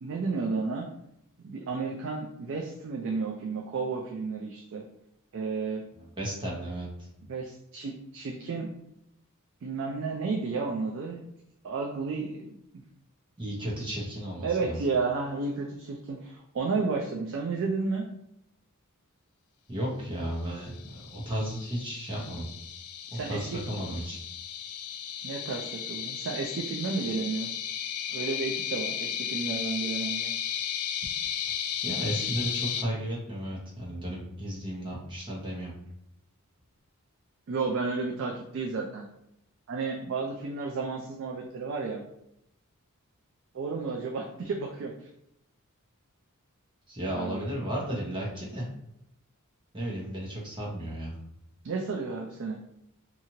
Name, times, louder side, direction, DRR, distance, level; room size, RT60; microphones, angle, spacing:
voice 1, 0.0-0.9 1.4-4.8 5.3-5.8 7.3-8.7 9.6-11.2 11.6-12.8 14.4-18.1 23.1-23.6 25.2-27.5 28.1-30.3 37.5-39.0 39.7-42.0 43.5-44.9 47.1-47.4 51.6-52.6, right 4 dB, 55° right, 0 dB, 0.4 m, -32 dB
voice 2, 5.9-7.1 13.4-14.8 19.7-22.5 23.1-24.2 31.8-35.7 46.9-48.7 49.7-51.2, right 1 dB, 20° right, -5 dB, 0.8 m, -34 dB
sound 1, 20.7-32.8, left 9 dB, 75° left, 0.3 m, -34 dB
2.9 x 2.4 x 2.7 m, 0.79 s
head